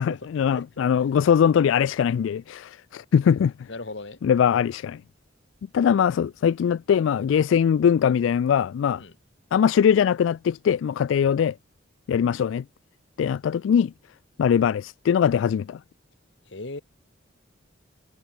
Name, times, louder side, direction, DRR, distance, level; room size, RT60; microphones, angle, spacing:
voice 1, 0.0-3.5 4.2-5.0 5.7-9.0 9.5-11.5 12.1-12.6 13.2-13.9 14.4-15.8, left 8 dB, 85° left, 0.3 m, -21 dB
voice 2, 0.5-0.9 3.7-4.2 9.0-9.1 16.5-16.8, left 2 dB, 70° left, 1.6 m, -37 dB
head